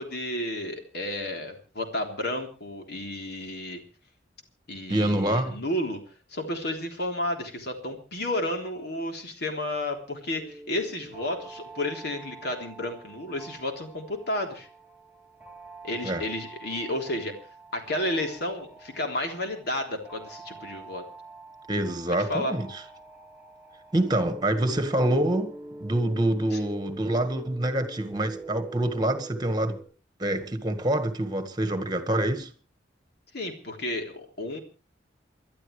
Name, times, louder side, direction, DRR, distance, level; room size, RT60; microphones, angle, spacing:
voice 1, 0.0-3.8 4.7-6.0 6.3-14.7 15.8-17.3 17.7-21.0 22.1-22.5 26.5-26.6 33.3-34.6, left 1 dB, 60° left, 3.6 m, -32 dB
voice 2, 4.9-5.6 16.0-16.2 21.7-22.8 23.9-25.5 25.8-29.8 30.2-32.5, right 1 dB, 25° right, 1.7 m, -26 dB
sound 1, 10.3-29.8, right 2 dB, 5° right, 5.3 m, -45 dB
28.5 x 12.0 x 3.3 m
head